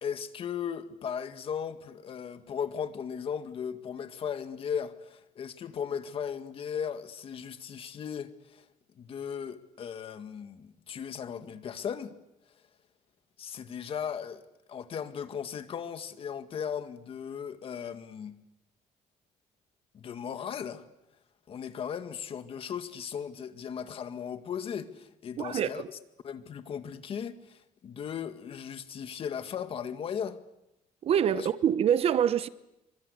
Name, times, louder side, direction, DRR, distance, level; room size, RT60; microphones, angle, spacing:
voice 1, 0.0-8.7 9.0-12.1 13.4-14.4 14.7-18.4 19.9-20.9 21.5-26.0 26.2-30.4 31.3-31.5, left 7 dB, 40° left, 2.0 m, -37 dB
voice 2, 25.4-25.9 31.0-32.5, right 9 dB, 45° right, 0.9 m, -25 dB
28.0 x 25.0 x 8.3 m
cardioid pair, 155°, 14 cm